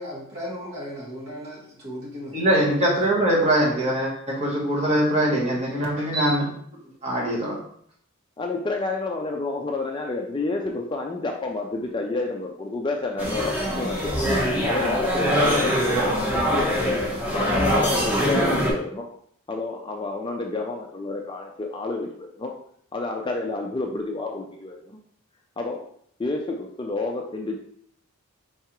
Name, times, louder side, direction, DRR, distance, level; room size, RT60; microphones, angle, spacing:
voice 1, 0.0-2.4 3.0-3.2, equal, 50° right, -6 dB, 1.8 m, -36 dB
voice 2, 2.3-6.5 7.0-7.6, right 1 dB, 30° right, -4 dB, 1.3 m, -22 dB
voice 3, 8.4-14.3 14.7-16.9 17.3-19.1 19.5-22.5 22.9-25.0 25.6-25.8 26.2-27.6, left 3 dB, 20° left, 1 dB, 0.3 m, -30 dB
sound 1, 13.2-18.7, equal, 5° right, 1.2 m, -23 dB
4.7 x 3.4 x 2.9 m, 0.64 s
head